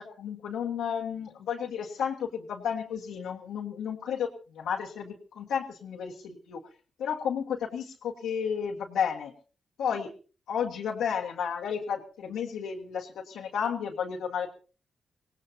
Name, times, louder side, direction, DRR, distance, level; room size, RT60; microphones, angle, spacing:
voice 1, 0.0-6.6 7.0-9.3 9.8-10.1 10.5-14.5, left 7 dB, 85° left, -3 dB, 1.7 m, -32 dB
24.5 x 17.5 x 2.8 m, 0.36 s
supercardioid pair, 55°, 0 cm